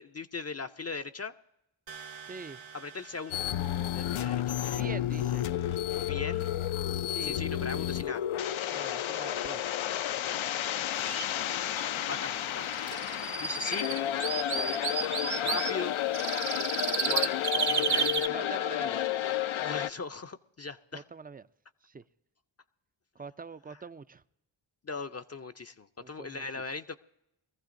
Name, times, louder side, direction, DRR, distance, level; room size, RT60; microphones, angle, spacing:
voice 1, 0.0-1.3 2.7-3.5 3.9-4.5 6.0-6.5 7.2-8.2 12.1-12.7 13.4-13.9 15.4-16.0 17.0-18.3 19.6-21.0 23.7-23.8 24.8-27.0, left 4 dB, 35° left, 8 dB, 0.5 m, -39 dB
sound 1, 1.9-4.8, right 6 dB, 70° right, 1.1 m, -49 dB
voice 2, 2.2-2.6 4.7-5.4 7.1-7.4 8.7-9.6 18.3-19.1 20.9-21.4 21.8-22.0 23.2-24.2 26.0-26.4, right 4 dB, 20° right, 14 dB, 0.4 m, -44 dB
sound 2, 3.3-19.9, left 11 dB, 80° left, 0.5 m, -31 dB
sound 3, 10.9-11.2 11.8-11.9 12.1-12.2 12.6-15.7 16.1-18.3, right 6 dB, 50° right, 0.9 m, -32 dB
22.5 x 14.5 x 2.6 m, 0.85 s
cardioid pair, 50°, 48 cm